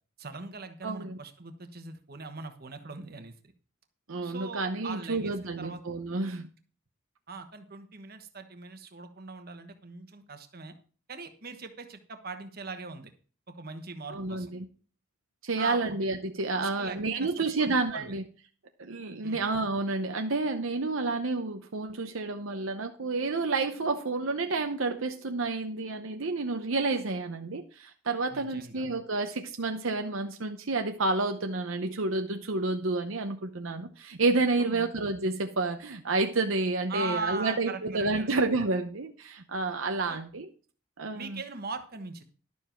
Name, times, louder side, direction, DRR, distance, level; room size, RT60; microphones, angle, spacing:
voice 1, 0.2-3.3 4.2-5.8 7.3-10.7 11.1-13.1 13.5-14.5 15.6-16.0 16.6-18.1 19.2-19.4 28.3-28.8 34.6-34.8 36.9-38.3 40.1-40.2 41.1-42.2, right 3 dB, 45° right, 7 dB, 1.2 m, -40 dB
voice 2, 0.8-1.2 4.1-6.5 14.1-14.6 15.4-18.2 18.8-40.5 41.0-41.4, right 3 dB, 70° right, 5 dB, 0.8 m, -30 dB
12.0 x 7.1 x 4.5 m, 0.41 s
head